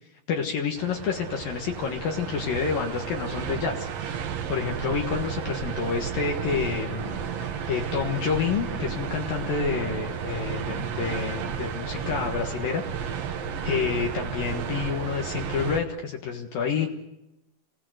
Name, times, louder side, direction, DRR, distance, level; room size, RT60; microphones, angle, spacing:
voice 1, 0.3-4.2 4.5-7.2 7.7-12.8 13.6-16.9, left 6 dB, 65° left, 1 dB, 3.2 m, -29 dB
sound 1, 0.8-15.8, right 7 dB, 60° right, 1.8 m, -32 dB
28.0 x 17.5 x 8.0 m, 0.92 s
omnidirectional pair, 4.5 m